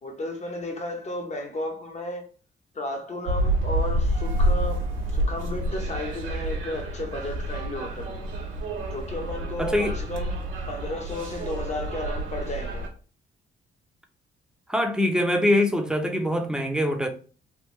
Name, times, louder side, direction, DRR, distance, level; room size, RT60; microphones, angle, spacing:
voice 1, 0.0-2.3 2.7-4.8 5.1-8.2 8.9-12.8, left 1 dB, 35° left, 1.0 m, -33 dB
sound 1, 3.3-12.9, right 1 dB, 85° right, 1.1 m, -28 dB
voice 2, 9.6-10.0 14.7-17.1, left 1 dB, 5° right, 0.7 m, -23 dB
3.5 x 2.4 x 3.0 m
cardioid pair, 90°, 20 cm